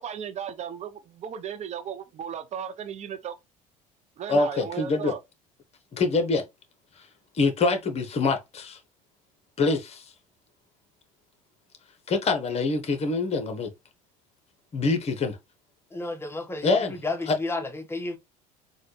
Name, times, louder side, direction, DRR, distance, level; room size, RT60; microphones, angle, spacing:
voice 1, 0.0-3.4 4.2-5.2, right 8 dB, 40° right, 0.7 m, -35 dB
voice 2, 4.3-5.1 5.9-6.4 7.4-8.8 9.6-10.1 12.1-13.7 14.7-15.4 16.6-17.0 17.3-17.4, left 3 dB, 35° left, 1.1 m, -25 dB
voice 3, 15.9-16.8 17.0-18.2, left 2 dB, 15° left, 1.0 m, -32 dB
4.2 x 2.4 x 3.1 m
hypercardioid pair, 75°, 18 cm